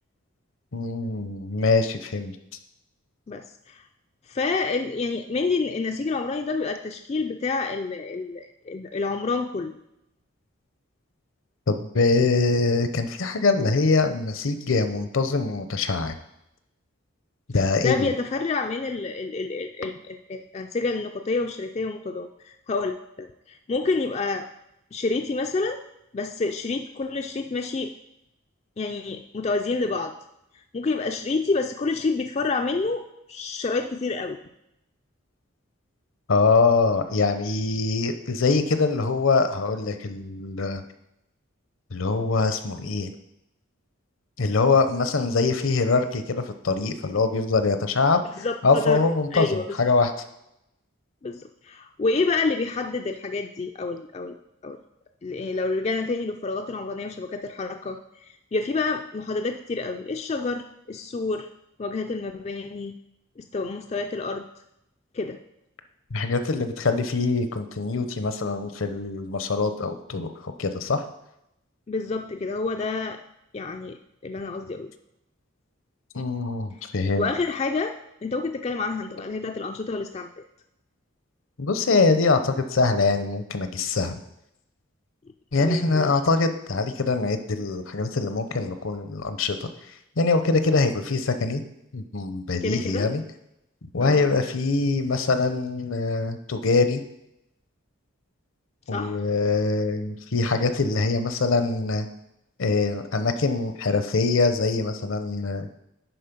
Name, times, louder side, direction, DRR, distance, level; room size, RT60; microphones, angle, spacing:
voice 1, 0.7-2.4 11.7-16.2 17.5-18.1 36.3-40.8 41.9-43.1 44.4-48.2 48.6-50.1 66.1-71.0 76.1-77.3 81.6-84.2 85.5-89.7 90.2-91.6 91.9-93.2 93.9-97.0 98.9-102.1 102.6-105.7, left 3 dB, 70° left, 9 dB, 0.7 m, -23 dB
voice 2, 3.3-3.8 4.3-9.8 17.8-24.5 24.9-25.8 26.1-27.9 28.8-30.1 30.7-33.0 33.3-34.4 48.4-49.0 49.3-49.6 51.2-54.4 54.6-54.8 55.2-61.5 61.8-63.0 63.4-64.4 65.1-65.4 71.9-73.2 73.5-74.0 74.2-74.9 77.2-77.9 78.2-80.4 85.6-86.1 92.6-93.1 94.0-94.3 98.9-99.2, left 3 dB, 30° left, 5 dB, 0.3 m, -28 dB
10.5 x 4.2 x 5.2 m, 0.84 s
head